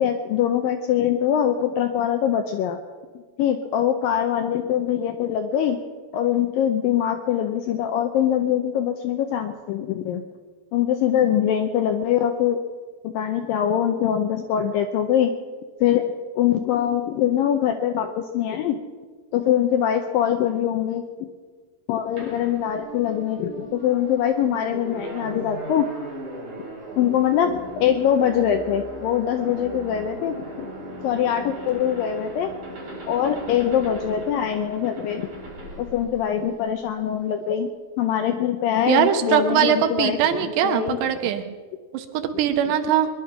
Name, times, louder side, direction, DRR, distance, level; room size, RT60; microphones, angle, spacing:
voice 1, 0.0-2.8 3.4-5.8 6.1-10.2 10.7-12.6 13.0-15.3 15.8-16.0 16.4-18.8 19.3-21.1 21.9-25.9 27.0-30.7 31.0-32.5 33.1-35.3 35.8-37.7 38.0-41.0, left 9 dB, 80° left, 6 dB, 2.0 m, -23 dB
sound 1, 22.2-36.9, right 1 dB, 40° right, 5.2 m, -38 dB
voice 2, 38.9-41.4 41.9-43.1, right 9 dB, 85° right, 7 dB, 3.2 m, -21 dB
22.0 x 11.0 x 5.8 m, 1.5 s
omnidirectional pair, 4.8 m